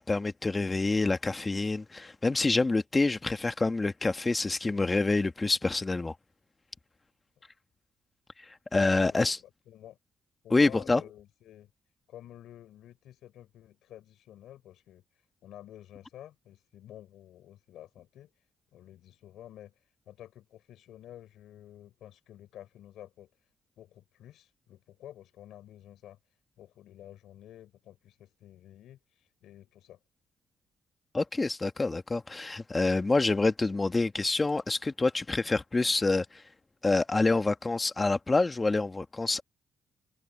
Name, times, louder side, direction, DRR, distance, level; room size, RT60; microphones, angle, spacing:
voice 1, 0.0-6.1 8.7-9.4 10.5-11.0 31.1-36.2 36.8-39.4, left 3 dB, 20° left, 1.5 m, -27 dB
voice 2, 9.1-10.0 10.4-11.7 12.1-15.0 15.4-18.3 18.7-19.7 20.1-23.3 23.8-26.2 26.6-30.0, left 12 dB, 80° left, 3.9 m, -50 dB
cardioid pair, 90°, 0 cm